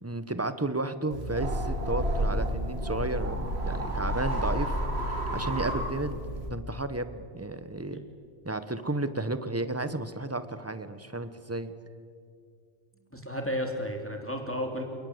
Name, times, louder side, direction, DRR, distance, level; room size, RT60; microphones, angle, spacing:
voice 1, 0.0-4.8 5.3-6.2 6.5-8.0 8.4-11.7, right 2 dB, 15° right, 11 dB, 1.1 m, -33 dB
sound 1, 1.1-6.5, equal, 60° right, 2.8 m, -30 dB
voice 2, 13.1-14.8, equal, 10° left, 2 dB, 2.9 m, -33 dB
29.0 x 19.5 x 8.0 m, 2.3 s
omnidirectional pair, 1.3 m